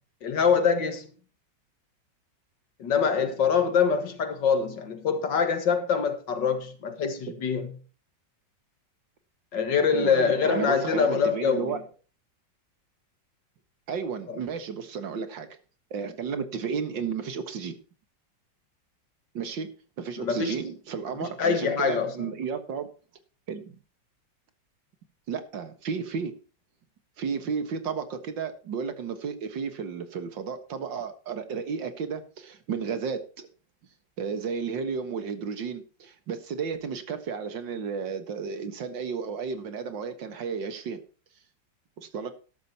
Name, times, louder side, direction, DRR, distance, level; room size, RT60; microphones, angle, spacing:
voice 1, 0.2-1.1 2.8-7.8 9.5-11.7 14.3-14.4 20.2-20.6 21.4-22.3, left 6 dB, 75° left, 2.3 m, -24 dB
voice 2, 9.9-11.8 13.9-15.5 15.9-17.8 19.3-19.7 20.0-22.9 23.5-23.8 25.3-26.3 27.2-33.5 34.2-41.0 42.0-42.3, right 6 dB, 85° right, 2.3 m, -33 dB
13.0 x 12.5 x 2.9 m
omnidirectional pair, 2.0 m